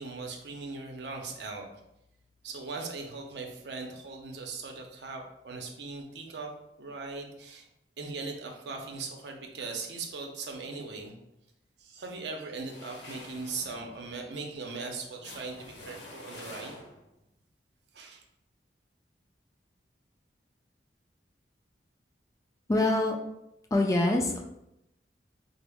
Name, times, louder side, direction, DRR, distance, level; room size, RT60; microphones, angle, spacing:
voice 1, 0.0-1.6 2.4-6.5 6.8-7.7 8.0-11.1 11.8-16.8 17.9-18.2, right 4 dB, 75° right, 2 dB, 0.6 m, -39 dB
sound 1, 12.6-17.2, left 1 dB, 70° left, 0.8 m, -48 dB
voice 2, 22.7-23.2 23.7-24.4, left 2 dB, 20° left, 1 dB, 0.3 m, -24 dB
3.8 x 2.0 x 3.4 m, 0.83 s
head